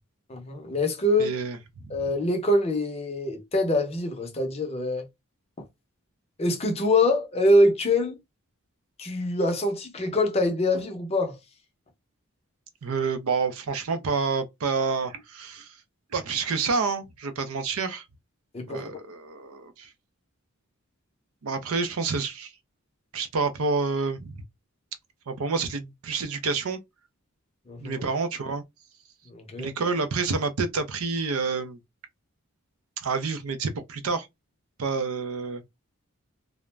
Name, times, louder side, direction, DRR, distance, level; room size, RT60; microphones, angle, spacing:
voice 1, 0.3-1.4 1.9-5.1 6.4-8.2 9.0-11.4 18.5-18.9 27.7-28.0 29.3-29.7, left 1 dB, 30° left, 0.5 m, -24 dB
voice 2, 1.2-1.6 12.8-15.8 16.1-18.0 18.7-19.9 21.4-22.5 23.1-24.4 25.3-26.8 27.8-28.6 29.6-31.8 33.0-34.3 34.8-35.6, right 4 dB, 80° right, 0.5 m, -28 dB
2.4 x 2.1 x 3.1 m
head